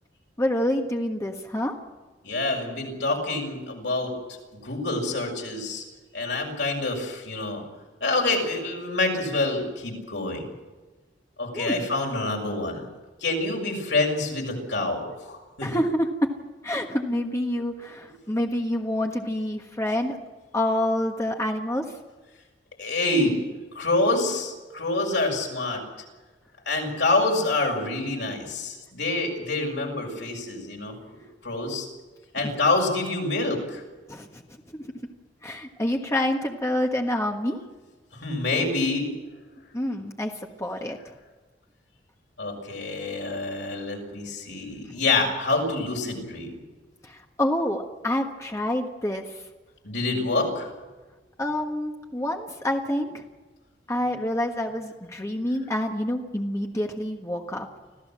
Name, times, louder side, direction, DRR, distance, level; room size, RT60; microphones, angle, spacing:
voice 1, 0.4-1.7 11.5-11.9 15.6-16.3 16.6-20.2 20.5-21.8 34.1-34.4 34.7-34.9 35.4-37.6 39.7-40.3 40.6-41.0 47.0-49.4 51.4-53.2 53.9-57.7, left 1 dB, 15° left, 2 dB, 1.4 m, -27 dB
voice 2, 2.2-4.1 4.6-5.8 6.1-7.6 8.0-10.5 11.4-12.9 13.2-15.7 22.8-23.4 23.7-25.8 26.7-30.9 31.4-31.9 32.3-33.8 38.1-39.1 42.4-46.6 49.8-50.7, left 2 dB, 75° left, 1 dB, 6.4 m, -26 dB
26.0 x 16.0 x 7.5 m, 1.2 s
head